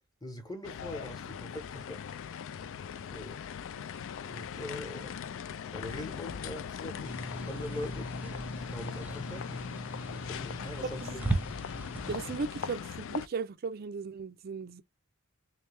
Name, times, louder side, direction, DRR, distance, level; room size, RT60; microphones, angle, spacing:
voice 1, 0.2-2.0 3.1-3.4 4.2-5.1 5.7-8.2 8.6-9.6 10.1-11.0, left 1 dB, 20° left, 0.9 m, -42 dB
sound 1, 0.6-13.3, left 7 dB, 60° left, 0.4 m, -40 dB
sound 2, 7.0-12.4, right 1 dB, 10° right, 0.8 m, -37 dB
voice 2, 10.8-11.2 12.1-14.8, right 4 dB, 45° right, 0.4 m, -36 dB
3.3 x 3.2 x 3.3 m
head